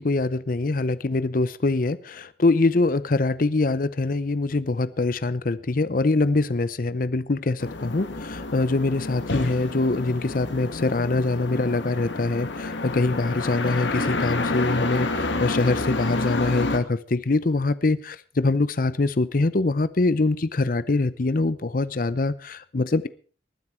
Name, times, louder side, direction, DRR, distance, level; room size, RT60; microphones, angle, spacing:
voice 1, 0.0-23.1, left 3 dB, 50° left, 16 dB, 0.6 m, -24 dB
sound 1, 7.6-16.8, left 2 dB, 85° left, 1.7 m, -29 dB
19.5 x 9.9 x 4.4 m, 0.40 s
head